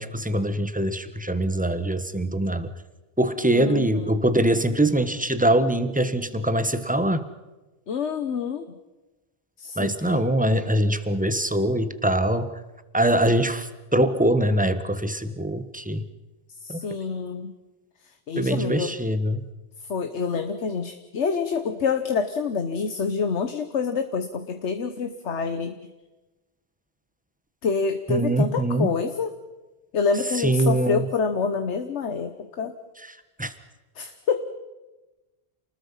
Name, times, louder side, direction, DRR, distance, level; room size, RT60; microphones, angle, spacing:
voice 1, 0.0-2.7 3.2-7.3 9.8-12.5 12.9-16.1 16.7-16.8 18.4-19.4 28.1-28.9 30.4-31.1 33.4-33.5, right 1 dB, 5° right, 11 dB, 1.2 m, -23 dB
voice 2, 3.5-4.2 7.9-8.8 9.6-10.1 16.6-17.5 18.0-18.9 19.8-25.8 27.6-29.3 29.9-32.7 33.9-34.5, left 5 dB, 80° left, 8 dB, 1.4 m, -27 dB
28.5 x 20.0 x 5.6 m, 1.1 s
omnidirectional pair, 1.2 m